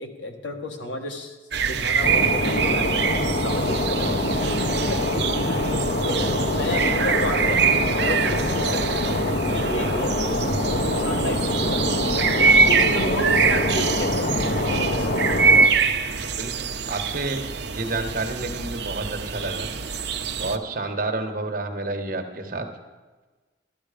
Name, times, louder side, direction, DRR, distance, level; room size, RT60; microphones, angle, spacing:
voice 1, 0.0-1.4 1.6-2.9 3.4-10.1 10.6-15.4, left 1 dB, 80° left, 3 dB, 1.7 m, -32 dB
sound 1, 1.5-20.6, right 5 dB, 65° right, 0.8 m, -24 dB
sound 2, 2.0-15.7, left 1 dB, 50° left, 0.9 m, -24 dB
voice 2, 16.4-17.4 17.7-19.7 20.4-22.7, right 2 dB, 50° right, 4 dB, 1.3 m, -29 dB
14.0 x 12.0 x 5.1 m, 1.3 s
head